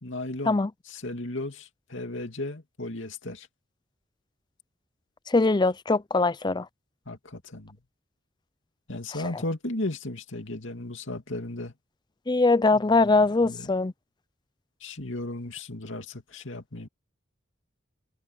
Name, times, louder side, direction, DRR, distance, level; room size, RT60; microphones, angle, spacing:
voice 1, 0.0-3.5 7.1-7.8 8.9-11.7 12.7-12.8 13.4-13.7 14.8-16.9, left 2 dB, 70° left, 2.7 m, -35 dB
voice 2, 5.3-6.7 9.3-9.4 12.3-13.9, left 3 dB, 20° left, 0.5 m, -22 dB
head